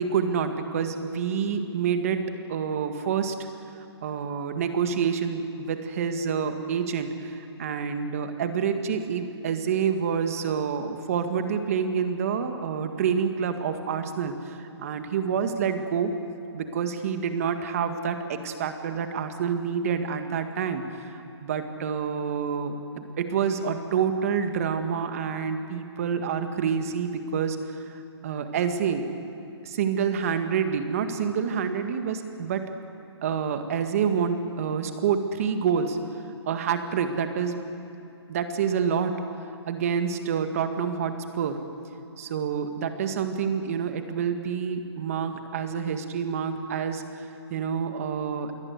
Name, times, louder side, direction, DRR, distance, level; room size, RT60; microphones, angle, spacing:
voice 1, 0.0-2.2 2.5-3.3 4.0-16.1 16.5-27.6 27.9-29.1 29.6-32.6 33.2-36.0 36.5-37.6 38.3-39.1 39.7-41.6 42.2-48.5, right 7 dB, 30° right, 7 dB, 1.9 m, -28 dB
27.5 x 22.5 x 8.2 m, 2.8 s
hypercardioid pair, 170°, 14 cm